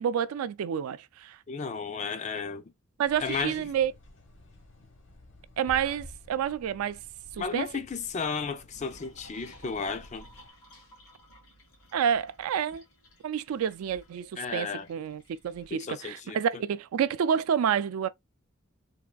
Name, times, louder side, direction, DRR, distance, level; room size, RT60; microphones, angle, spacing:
voice 1, 0.0-1.4 3.0-3.9 5.6-7.0 7.3-7.7 11.9-12.8 13.2-18.1, right 8 dB, 85° right, 0.3 m, -29 dB
voice 2, 1.5-2.6 3.2-3.6 7.4-10.3 14.4-14.9 15.7-16.4, left 5 dB, 35° left, 0.3 m, -33 dB
sound 1, 3.0-10.5, left 1 dB, 60° left, 0.8 m, -52 dB
sound 2, 8.7-15.7, equal, 90° left, 1.7 m, -56 dB
3.5 x 2.3 x 2.2 m
head